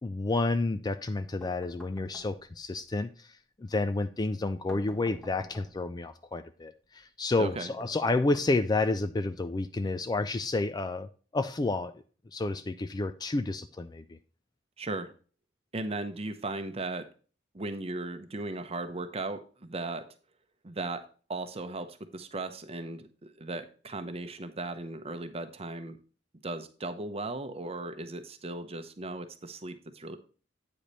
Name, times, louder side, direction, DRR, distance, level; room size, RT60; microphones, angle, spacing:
voice 1, 0.0-3.3 3.6-11.1 11.3-11.9 12.3-14.2, left 2 dB, 20° left, 11 dB, 0.4 m, -30 dB
sound 1, 1.4-2.7 4.7-6.0 7.8-9.0, left 1 dB, ahead, 1.2 m, -50 dB
voice 2, 7.4-7.7 14.8-15.1 15.7-17.1 17.5-20.1 20.6-21.0 21.3-26.0 26.4-30.2, right 2 dB, 30° right, 9 dB, 0.8 m, -37 dB
8.7 x 5.1 x 4.0 m, 0.37 s
head